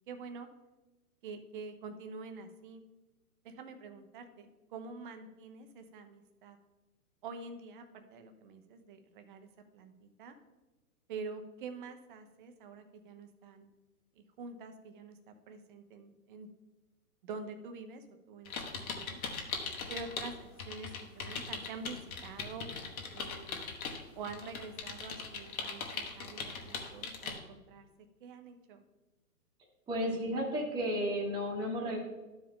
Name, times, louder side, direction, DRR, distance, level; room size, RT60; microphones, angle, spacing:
voice 1, 0.1-0.5 1.2-2.8 3.4-6.6 7.2-9.5 9.7-10.3 11.1-13.7 14.2-16.5 17.2-19.2 19.9-22.0 22.2-22.7 23.1-23.7 24.1-27.9 28.2-28.8, right 4 dB, 35° right, 7 dB, 0.8 m, -46 dB
sound 1, 18.4-20.3 20.6-27.4, left 5 dB, 65° left, 1.6 m, -40 dB
voice 2, 29.9-32.0, equal, 10° right, -4 dB, 1.2 m, -33 dB
12.5 x 4.8 x 3.7 m, 1.1 s
hypercardioid pair, 145°, 46 cm